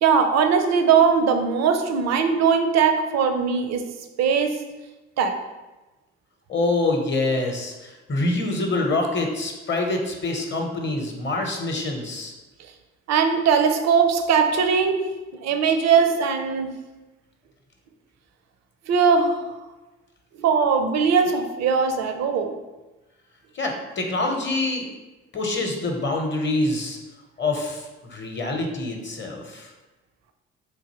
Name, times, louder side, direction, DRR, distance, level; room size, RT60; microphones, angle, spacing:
voice 1, 0.0-4.6 5.2-5.4 13.1-15.1 15.4-16.8 18.9-19.4 20.4-22.5, right 6 dB, 60° right, 6 dB, 0.5 m, -20 dB
voice 2, 6.5-12.3 23.5-24.9 25.3-27.0 27.4-29.7, left 2 dB, 35° left, 3 dB, 0.8 m, -26 dB
3.7 x 2.6 x 2.9 m, 1.1 s
hypercardioid pair, 45°, 31 cm